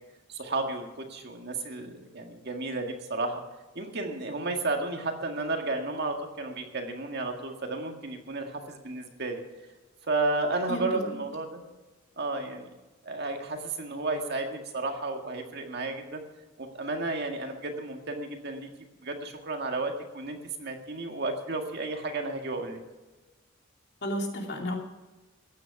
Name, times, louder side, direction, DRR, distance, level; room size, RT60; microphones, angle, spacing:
voice 1, 0.3-3.4 3.8-9.4 10.1-11.6 12.2-12.7 13.0-16.2 16.6-18.7 19.0-22.8, right 2 dB, 55° right, 4 dB, 1.8 m, -32 dB
voice 2, 10.7-11.0 24.0-24.8, equal, 55° left, 1 dB, 2.6 m, -32 dB
15.5 x 9.7 x 6.0 m, 1.2 s
head